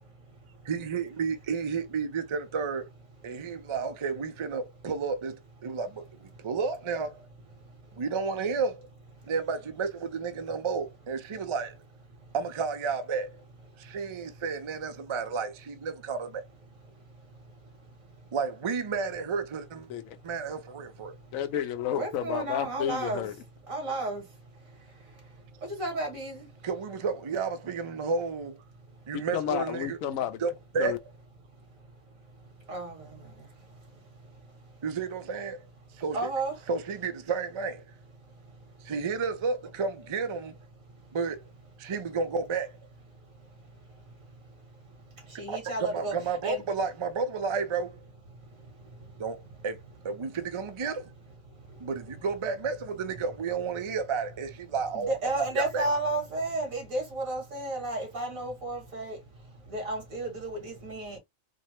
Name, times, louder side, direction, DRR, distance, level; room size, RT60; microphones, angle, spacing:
voice 1, 0.6-2.9 3.2-7.3 8.0-8.8 9.3-11.8 12.3-13.3 13.8-16.4 18.3-19.9 20.2-21.1 26.6-28.6 29.1-30.0 30.4-31.0 34.8-35.6 36.0-36.2 36.7-37.8 38.8-40.5 41.1-41.4 41.8-42.7 45.5-48.0 49.2-49.8 50.0-51.1 51.8-55.9, right 5 dB, 45° right, 0.4 m, -31 dB
voice 2, 21.3-23.3 29.1-30.4 30.8-31.0, left 10 dB, 90° left, 1.1 m, -31 dB
voice 3, 21.9-23.3 23.7-24.2 25.7-26.5 32.7-33.0 36.1-36.5 45.4-46.1 46.4-46.6 54.9-59.2 59.7-61.2, right 2 dB, 85° right, 2.3 m, -32 dB
4.3 x 2.1 x 2.9 m
omnidirectional pair, 1.4 m